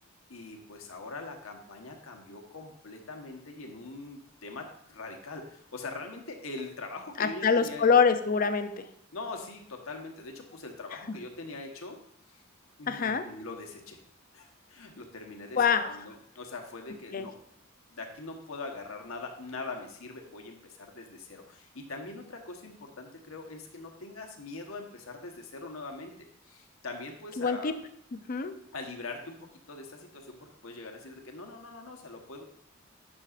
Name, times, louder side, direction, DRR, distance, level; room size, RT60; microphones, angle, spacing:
voice 1, 0.3-7.8 9.1-12.0 12.3-12.4 12.8-14.0 14.3-15.6 15.9-17.3 17.9-26.1 26.4-27.7 28.7-29.4 29.7-32.4, left 3 dB, 75° left, 3 dB, 1.1 m, -42 dB
voice 2, 7.2-8.9 11.1-11.2 12.9-13.2 15.6-15.9 17.1-17.3 27.4-27.7 28.1-28.5, left 5 dB, 40° left, 9 dB, 0.5 m, -25 dB
9.7 x 6.3 x 2.5 m, 0.69 s
head